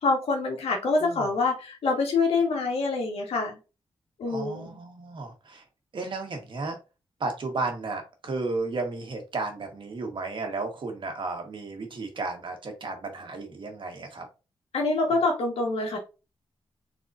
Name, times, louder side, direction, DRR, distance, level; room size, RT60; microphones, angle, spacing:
voice 1, 0.0-3.6 4.2-4.8 14.7-16.0, left 3 dB, 85° left, 0 dB, 1.7 m, -26 dB
voice 2, 4.2-5.6 5.9-6.8 7.2-14.3 15.1-15.2, right 3 dB, 55° right, 3 dB, 1.5 m, -33 dB
4.1 x 4.0 x 2.7 m, 0.29 s
cardioid pair, 80°, 10 cm